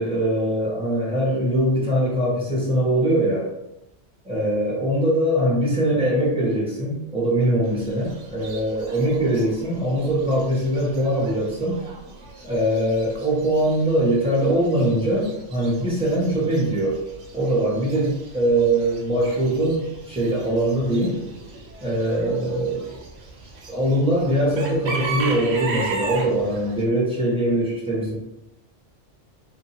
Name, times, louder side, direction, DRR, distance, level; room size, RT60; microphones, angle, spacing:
voice 1, 0.0-3.5 4.2-11.8 12.4-17.0 17.3-21.1 21.8-22.9 23.7-28.1, right 1 dB, 5° right, -6 dB, 0.9 m, -22 dB
Chicken rooster / Bird, 7.6-26.8, right 3 dB, 70° right, 0.8 m, -37 dB
2.6 x 2.5 x 2.8 m, 0.89 s
omnidirectional pair, 1.2 m